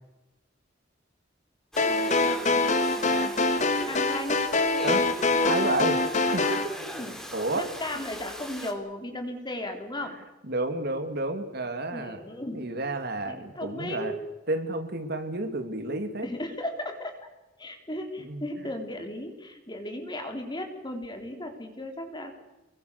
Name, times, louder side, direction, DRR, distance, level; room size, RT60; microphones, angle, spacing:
Domestic sounds home sounds, 1.7-8.7, equal, 5° left, 3.2 m, -40 dB
sound 1, 1.8-6.7, left 3 dB, 40° left, 2.0 m, -24 dB
voice 1, 1.8-3.3 3.8-4.5 6.9-7.2 7.5-10.2 11.9-12.6 13.3-14.2 16.2-17.1 17.6-22.3, left 1 dB, 25° left, 4 dB, 3.8 m, -36 dB
voice 2, 5.5-6.0 6.3-6.7 7.3-7.7 10.5-12.2 12.5-14.1 14.5-16.3 18.2-18.4, right 2 dB, 60° right, 7 dB, 2.8 m, -30 dB
28.5 x 22.5 x 6.8 m, 1.0 s
head